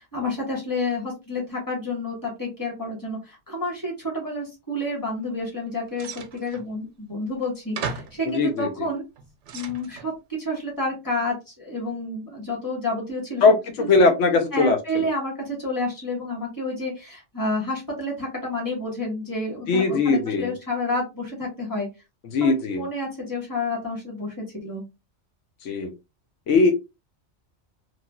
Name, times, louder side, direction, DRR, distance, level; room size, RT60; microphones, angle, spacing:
voice 1, 0.0-9.0 9.5-13.4 13.8-13.9 14.5-21.9 22.4-24.8, left 2 dB, 15° left, -2 dB, 1.3 m, -29 dB
sound 1, 6.0-6.7 7.4-7.5 7.8-8.2 9.0-10.1, right 5 dB, 80° right, 0.9 m, -35 dB
voice 2, 8.3-8.9 13.4-15.1 19.7-20.5 22.3-22.8 25.6-25.9 26.5-26.7, left 3 dB, 85° left, 5 dB, 1.0 m, -20 dB
3.1 x 2.5 x 2.2 m, 0.24 s
omnidirectional pair, 1.2 m